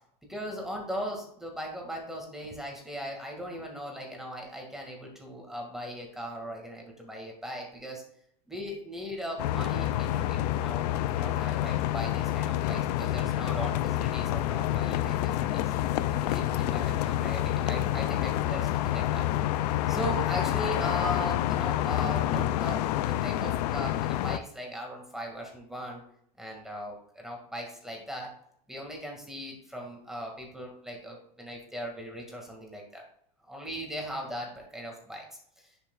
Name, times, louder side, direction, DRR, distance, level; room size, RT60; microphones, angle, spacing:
voice 1, 0.2-8.0 8.5-15.6 16.1-19.2 19.9-26.0 26.4-28.3 28.7-33.0 33.4-35.2 35.6-35.7, equal, ahead, 0 dB, 2.1 m, -38 dB
sound 1, 9.4-24.4, left 13 dB, 80° left, 0.5 m, -28 dB
10.0 x 6.1 x 2.4 m, 0.70 s
supercardioid pair, 135°, 20 cm